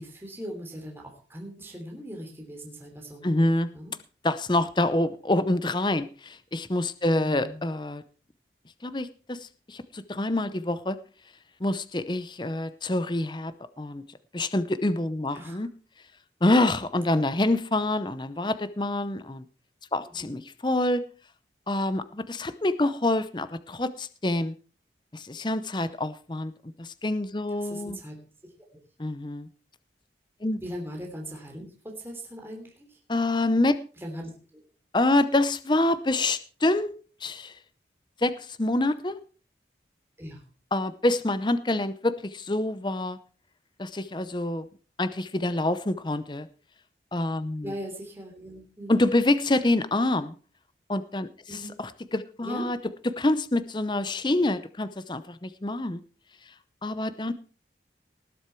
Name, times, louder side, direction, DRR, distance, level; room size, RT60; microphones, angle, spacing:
voice 1, 0.0-3.9 7.2-7.6 15.3-15.7 20.1-20.4 27.6-28.2 30.6-33.0 34.0-34.3 40.2-40.4 47.6-49.1 51.5-51.8 52.4-52.7, equal, 15° right, 1 dB, 3.3 m, -40 dB
voice 2, 3.2-3.7 4.2-8.0 8.8-9.4 9.7-11.0 11.6-14.0 14.3-15.7 16.4-19.4 19.9-21.0 21.7-24.5 25.1-26.5 26.8-28.0 29.0-29.5 30.4-30.6 33.1-33.8 34.9-36.9 37.2-37.5 38.2-38.3 38.6-39.2 40.7-43.2 43.8-44.6 45.0-46.5 47.1-47.7 48.9-50.3 50.9-51.3 51.8-52.8 53.2-56.0 56.8-57.3, left 2 dB, 25° left, 13 dB, 0.7 m, -26 dB
19.0 x 8.0 x 4.6 m, 0.38 s
head